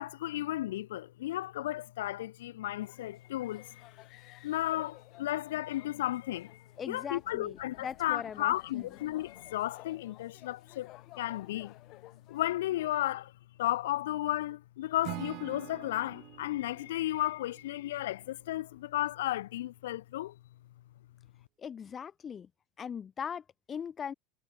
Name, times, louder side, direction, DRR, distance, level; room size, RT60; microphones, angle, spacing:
voice 1, 0.0-3.8 4.4-10.9 11.2-11.7 12.3-13.3 13.6-20.3, left 14 dB, 70° left, 0.8 m, -34 dB
sound 1, 2.8-13.0, left 17 dB, 50° left, 5.2 m, -55 dB
voice 2, 6.8-9.1 21.6-22.5 22.8-24.1, left 7 dB, 30° left, 1.2 m, -40 dB
Acoustic guitar / Strum, 15.0-18.2, right 20 dB, 55° right, 2.2 m, -45 dB
hypercardioid pair, 80°, 0 cm